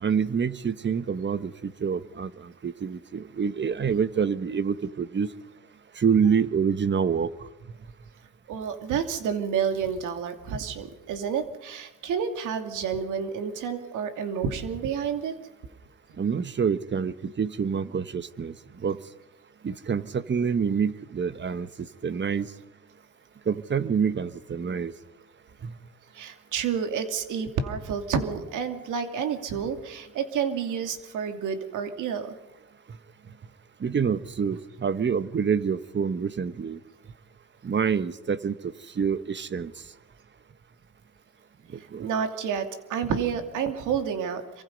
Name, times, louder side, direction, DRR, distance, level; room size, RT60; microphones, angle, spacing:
voice 1, 0.0-2.3 2.6-5.3 6.0-7.3 16.2-18.5 18.8-19.0 19.6-21.7 22.0-22.5 23.5-24.9 25.6-25.7 33.8-36.8 37.6-38.5 39.0-39.7 41.9-42.1, right 6 dB, 40° right, 13 dB, 1.3 m, -26 dB
voice 2, 8.5-15.3 26.1-32.4 41.8-44.6, right 7 dB, 85° right, 6 dB, 2.7 m, -29 dB
26.5 x 24.0 x 5.4 m, 1.0 s
cardioid pair, 90°, 30 cm